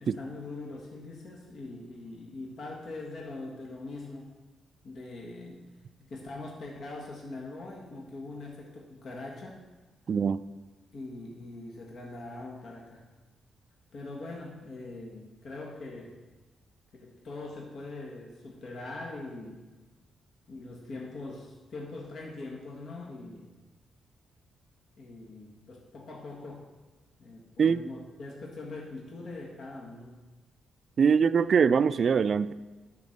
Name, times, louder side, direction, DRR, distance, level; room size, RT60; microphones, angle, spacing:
voice 1, 0.0-4.4 4.8-5.7 6.0-9.6 10.9-13.1 13.9-16.2 17.0-19.7 20.5-23.5 25.0-26.7 27.2-30.2, left 2 dB, 65° left, -1 dB, 1.6 m, -42 dB
voice 2, 10.1-10.4 27.6-27.8 31.0-32.5, right 6 dB, 55° right, 14 dB, 0.4 m, -23 dB
11.0 x 4.4 x 6.5 m, 1.2 s
supercardioid pair, 65°, 0 cm